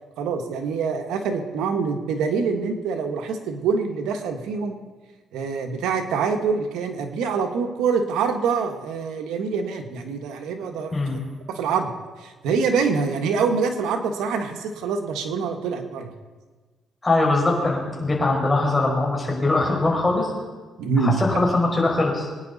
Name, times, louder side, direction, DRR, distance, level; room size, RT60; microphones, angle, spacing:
voice 1, 0.2-4.8 5.3-11.2 11.5-11.9 12.2-16.1 20.8-21.1, right 5 dB, 90° right, 5 dB, 1.5 m, -25 dB
voice 2, 17.0-20.3 21.0-22.3, left 2 dB, 20° left, -1 dB, 5.0 m, -21 dB
23.0 x 10.0 x 4.2 m, 1.3 s
cardioid pair, 90°, 0 cm